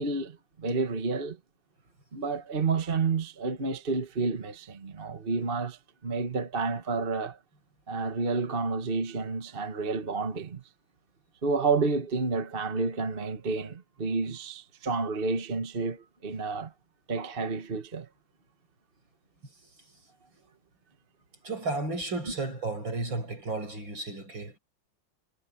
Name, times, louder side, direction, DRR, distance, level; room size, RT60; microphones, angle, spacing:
voice 1, 0.0-1.4 2.1-7.4 7.9-10.6 11.4-16.7 17.1-18.1, right 4 dB, 30° right, 1.5 m, -30 dB
voice 2, 21.4-24.6, right 2 dB, 70° right, 7.6 m, -33 dB
omnidirectional pair, 2.2 m